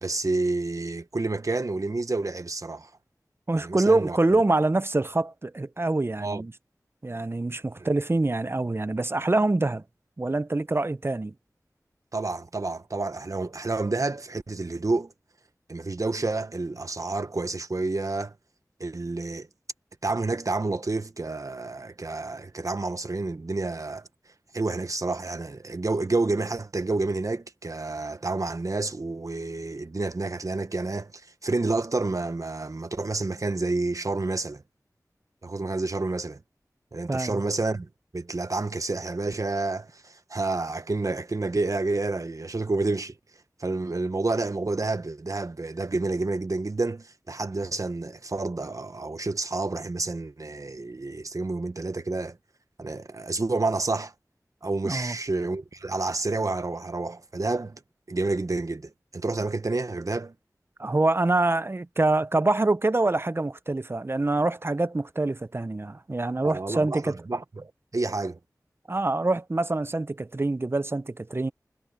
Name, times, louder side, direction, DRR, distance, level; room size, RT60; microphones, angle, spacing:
voice 1, 0.0-2.9 3.6-4.4 6.2-6.4 7.8-7.9 12.1-15.1 15.7-18.4 18.8-19.5 20.0-34.6 35.4-36.4 36.9-52.4 52.8-54.1 54.6-57.8 58.1-60.3 66.4-68.4, right 3 dB, 55° right, 1.2 m, -29 dB
voice 2, 3.5-6.5 7.0-9.8 10.2-11.3 37.1-37.4 54.8-55.1 60.8-67.2 68.9-71.5, right 2 dB, 35° right, 0.6 m, -25 dB
wide cardioid pair, 55°, 7 cm